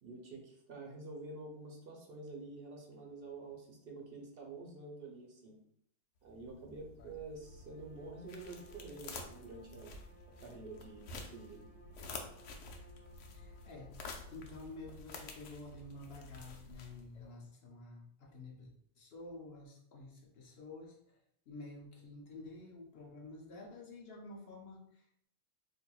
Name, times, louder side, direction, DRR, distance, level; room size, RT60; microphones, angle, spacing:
voice 1, 0.0-5.6 6.2-10.0 10.4-11.7, right 3 dB, 60° right, 0 dB, 0.8 m, -48 dB
sound 1, 6.3-17.3, left 3 dB, 90° left, 0.9 m, -50 dB
Bowed string instrument, 7.3-14.9, right 2 dB, 25° right, 1.0 m, -62 dB
voice 2, 13.3-14.0 14.3-21.2 21.5-25.3, left 2 dB, 60° left, 0 dB, 0.8 m, -50 dB
4.3 x 2.7 x 2.3 m, 0.71 s
omnidirectional pair, 1.2 m